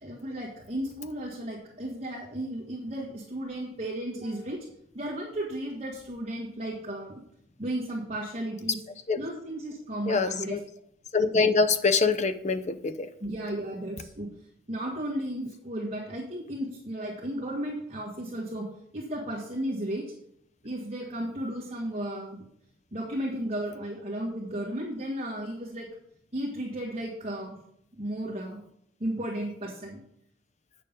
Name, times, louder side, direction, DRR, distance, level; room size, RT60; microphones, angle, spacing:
voice 1, 0.0-4.6 4.9-7.2 7.6-8.8 9.2-10.6 13.2-14.3 14.7-18.6 18.9-20.0 20.6-22.4 22.9-25.9 26.3-27.6 28.0-28.6 29.0-30.0, right 1 dB, 30° right, -5 dB, 1.6 m, -34 dB
voice 2, 10.1-10.6 11.1-13.1, left 4 dB, 35° left, 9 dB, 0.6 m, -24 dB
8.7 x 6.7 x 5.3 m, 0.72 s
head